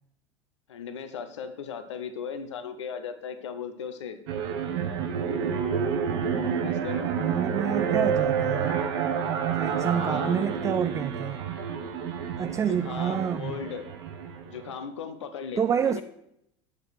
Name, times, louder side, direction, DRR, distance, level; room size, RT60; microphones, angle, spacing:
voice 1, 0.7-4.2 6.6-7.1 9.8-10.6 12.7-13.8 14.4-16.0, left 7 dB, 70° left, 1.1 m, -37 dB
sound 1, 4.3-14.7, right 7 dB, 60° right, 1.3 m, -29 dB
voice 2, 7.2-8.7 9.5-11.4 12.4-13.5 15.6-16.0, right 8 dB, 20° right, 0.3 m, -28 dB
8.5 x 6.7 x 6.2 m
figure-of-eight pair, 75°, 16 cm